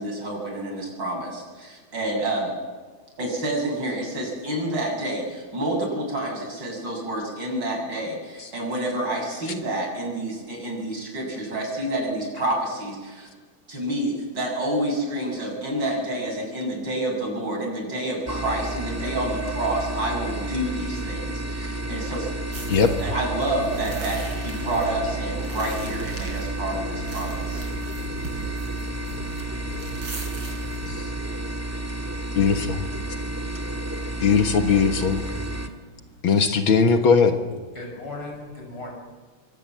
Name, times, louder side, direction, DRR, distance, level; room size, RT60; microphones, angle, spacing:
voice 1, 0.0-2.5 3.2-13.3 13.7-22.3 23.0-27.6, right 1 dB, 55° right, 1 dB, 7.8 m, -28 dB
sound 1, 18.3-35.7, right 1 dB, 10° right, 1.4 m, -31 dB
sound 2, 22.5-31.0, right 3 dB, 80° right, 5.9 m, -38 dB
voice 2, 32.4-32.8 34.2-35.3 36.2-37.4, left 5 dB, 70° left, 6 dB, 2.2 m, -19 dB
voice 3, 33.6-34.3 35.3-36.3 37.7-38.9, left 2 dB, 90° left, 1 dB, 7.6 m, -40 dB
26.5 x 24.5 x 7.6 m, 1.4 s
omnidirectional pair, 2.4 m